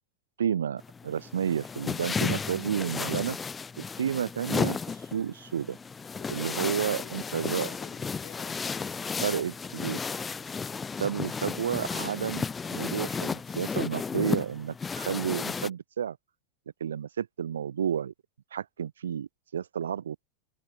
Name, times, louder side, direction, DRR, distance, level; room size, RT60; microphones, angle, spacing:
voice 1, 0.4-3.4 3.8-5.8 6.3-7.7 9.2-10.0 11.0-16.2 16.8-18.1 18.5-20.3, right 8 dB, 65° right, 0.5 m, -31 dB
sound 1, 0.8-15.7, left 5 dB, 15° left, 0.5 m, -33 dB
voice 2, 6.2-9.5, left 28 dB, 45° left, 1.3 m, -50 dB
figure-of-eight pair, 90°, 0 cm